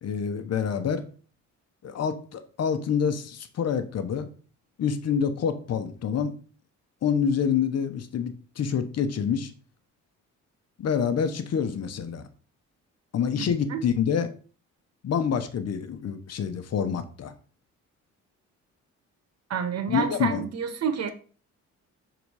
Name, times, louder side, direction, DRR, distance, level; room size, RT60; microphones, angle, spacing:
voice 1, 0.0-1.1 1.8-4.3 4.8-6.3 7.0-9.5 10.8-12.2 13.1-14.3 15.0-17.3 19.9-20.4, left 7 dB, 55° left, 1.0 m, -27 dB
voice 2, 19.5-21.1, right 7 dB, 60° right, 1.3 m, -29 dB
6.9 x 3.9 x 4.8 m
cardioid pair, 90°, 30 cm